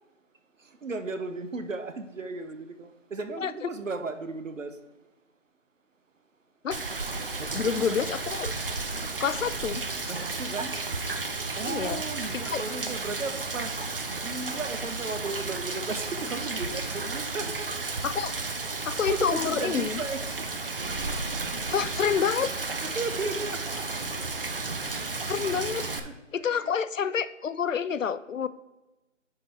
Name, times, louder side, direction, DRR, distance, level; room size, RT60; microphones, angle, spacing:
voice 1, 0.6-4.8 7.4-8.0 10.1-10.8 11.6-17.9 19.1-20.4 20.9-21.0 22.4-24.0 25.9-26.8, right 3 dB, 85° right, 8 dB, 0.9 m, -36 dB
Rain, 6.7-26.0, right 3 dB, 45° right, 0.7 m, -33 dB
voice 2, 7.5-8.5 9.2-9.8 11.6-12.0 12.5-12.6 18.0-18.3 18.8-20.0 21.7-22.5 25.3-25.8 26.3-28.5, left 7 dB, 85° left, 15 dB, 0.6 m, -28 dB
10.0 x 4.0 x 4.1 m, 1.1 s
figure-of-eight pair, 170°, 38 cm